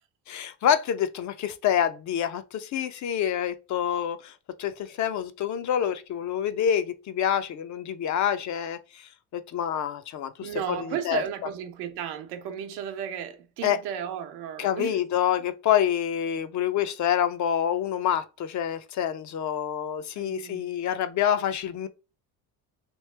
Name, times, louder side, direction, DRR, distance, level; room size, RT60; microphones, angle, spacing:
voice 1, 0.3-4.3 4.6-11.2 13.6-13.8 14.6-21.9, left 9 dB, 45° left, 0.5 m, -27 dB
voice 2, 10.4-15.0 20.2-20.7, right 9 dB, 85° right, 0.8 m, -34 dB
3.0 x 2.8 x 3.2 m
supercardioid pair, 95°, 40 cm